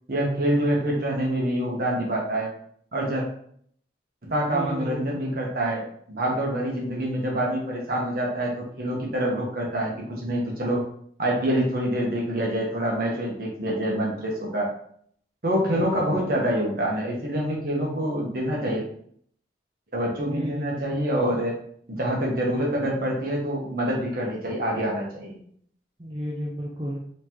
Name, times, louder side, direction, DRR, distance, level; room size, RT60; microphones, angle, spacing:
voice 1, 0.1-2.5 2.9-3.2 4.2-5.8 6.1-10.8 11.2-14.7 15.4-18.8 19.9-21.5 21.9-25.3, right 1 dB, 50° right, -2 dB, 1.1 m, -26 dB
voice 2, 4.5-5.3 20.3-21.0 26.0-27.0, equal, 25° right, -4 dB, 0.5 m, -32 dB
4.0 x 3.1 x 2.9 m, 0.63 s
head